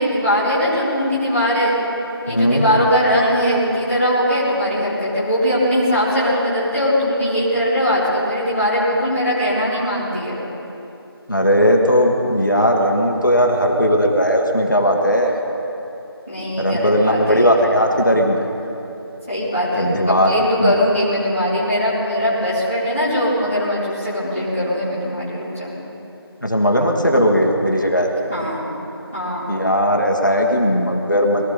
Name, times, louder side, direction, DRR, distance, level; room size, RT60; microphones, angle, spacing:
voice 1, 0.0-1.8 2.2-10.4 16.3-17.7 19.3-25.7 28.3-28.6 29.1-29.5, equal, 5° right, -17 dB, 1.6 m, -20 dB
voice 2, 2.3-2.7 11.3-15.4 16.6-18.5 19.7-20.3 20.6-20.7 26.4-28.1 29.5-31.4, equal, 50° left, 1 dB, 1.6 m, -17 dB
21.5 x 14.0 x 4.1 m, 2.9 s
figure-of-eight pair, 175°, 13 cm